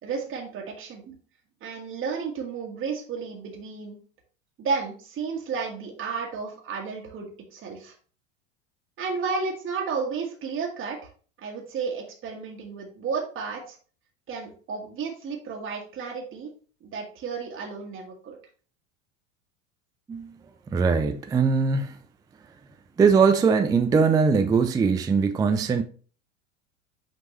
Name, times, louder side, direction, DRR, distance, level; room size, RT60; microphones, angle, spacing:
voice 1, 0.0-1.1 1.6-4.0 4.6-7.9 9.0-11.1 11.4-13.8 14.3-16.5 16.8-18.4, right 5 dB, 30° right, 1.5 m, -32 dB
voice 2, 20.7-21.9 23.0-25.8, right 5 dB, 10° right, 0.4 m, -21 dB
6.4 x 5.2 x 3.1 m
figure-of-eight pair, 80°, 39 cm